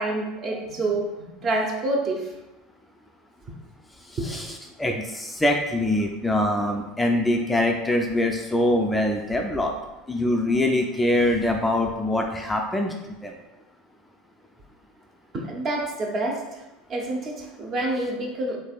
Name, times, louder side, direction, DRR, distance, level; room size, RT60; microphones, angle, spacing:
voice 1, 0.0-2.3 4.2-4.4 15.3-16.6 16.9-18.6, right 2 dB, 40° right, 1 dB, 0.7 m, -27 dB
voice 2, 4.1-4.5 4.8-9.7 10.1-13.3, left 1 dB, 10° left, 2 dB, 0.3 m, -24 dB
3.3 x 3.2 x 2.4 m, 1.0 s
hypercardioid pair, 95°, 0 cm